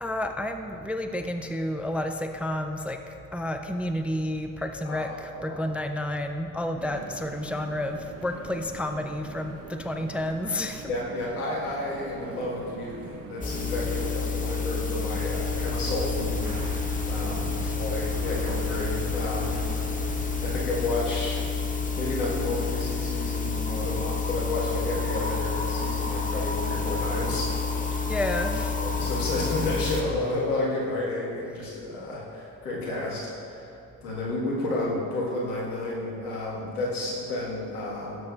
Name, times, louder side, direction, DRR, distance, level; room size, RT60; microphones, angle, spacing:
voice 1, 0.0-10.9 17.6-17.8 19.6-19.7 28.0-28.8, left 1 dB, 5° right, 6 dB, 0.3 m, -31 dB
voice 2, 4.8-5.6 10.8-16.8 17.1-19.6 20.4-21.4 22.0-27.5 27.8-28.1 28.8-38.3, left 2 dB, 90° left, -5 dB, 1.6 m, -31 dB
sound 1, 6.8-14.2, right 5 dB, 35° right, 0.7 m, -43 dB
sound 2, 13.4-30.0, left 4 dB, 20° left, 0.7 m, -29 dB
sound 3, 15.3-20.5, right 3 dB, 75° right, 1.1 m, -38 dB
13.0 x 6.6 x 2.4 m, 2.8 s
hypercardioid pair, 55°, 43 cm